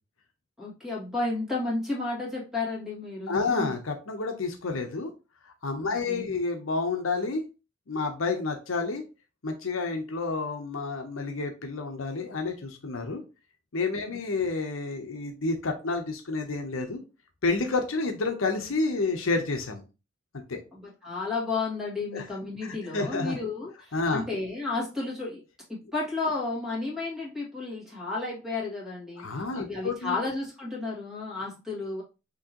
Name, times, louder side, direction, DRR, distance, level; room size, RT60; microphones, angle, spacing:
voice 1, 0.6-3.7 5.8-6.4 14.0-14.2 20.7-25.4 25.7-32.0, left 3 dB, 5° right, -4 dB, 2.0 m, -32 dB
voice 2, 3.3-5.1 5.6-7.4 7.9-9.0 9.4-13.2 13.7-17.0 17.4-19.8 20.5-20.6 22.1-22.2 22.6-23.4 23.9-24.2 29.2-30.2, left 3 dB, 75° left, 4 dB, 0.8 m, -29 dB
6.1 x 3.0 x 2.9 m, 0.30 s
head